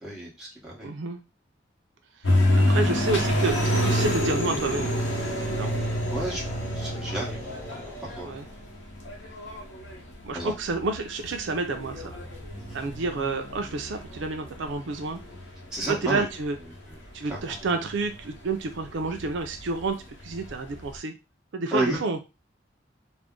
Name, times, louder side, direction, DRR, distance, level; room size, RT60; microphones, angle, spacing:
voice 1, 0.0-0.9 6.1-6.4 6.7-7.4 8.0-8.3 10.3-10.5 12.6-12.8 15.7-16.3 16.9-17.0 17.3-17.6 21.7-22.0, right 1 dB, 5° right, -5 dB, 0.9 m, -32 dB
voice 2, 0.8-1.2 2.6-5.0 5.4-5.7 8.2-8.5 10.2-12.2 12.7-15.2 15.8-16.6 17.1-20.0 20.2-21.1 21.5-22.2, right 3 dB, 75° right, 5 dB, 0.4 m, -29 dB
sound 1, 2.2-16.2 16.8-16.9 17.3-19.9 20.2-21.0, equal, 85° left, 0.9 m, -27 dB
sound 2, 4.5-8.7, equal, 10° left, 0.5 m, -40 dB
2.5 x 2.1 x 3.6 m, 0.26 s
head